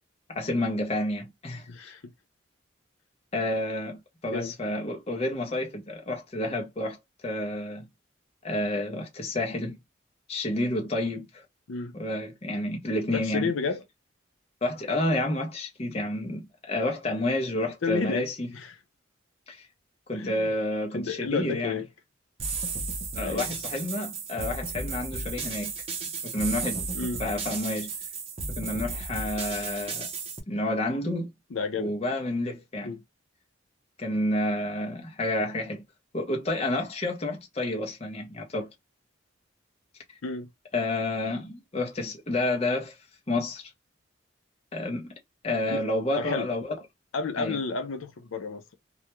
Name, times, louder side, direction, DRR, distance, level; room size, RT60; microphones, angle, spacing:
voice 1, 0.3-1.9 3.3-7.0 7.2-7.9 8.4-9.8 10.3-11.4 11.9-13.5 14.6-18.5 19.5-19.7 20.1-21.8 23.1-25.7 26.2-26.8 27.2-27.9 28.5-30.1 30.5-31.3 31.8-33.0 34.0-35.8 36.1-38.7 40.7-43.0 43.3-43.6 44.7-45.2 45.4-46.8 47.4-47.6, left 1 dB, 30° left, 0.7 m, -30 dB
voice 2, 1.7-2.0 4.2-4.5 11.7-11.9 13.1-13.8 17.8-18.8 20.1-20.5 20.9-21.9 23.2-23.5 26.9-27.2 31.5-32.0 32.8-33.0 40.2-40.5 45.7-45.8 46.2-46.5 47.1-48.8, left 4 dB, 80° left, 0.5 m, -31 dB
sound 1, 22.4-30.4, right 4 dB, 30° right, 0.6 m, -34 dB
2.3 x 2.2 x 2.9 m
head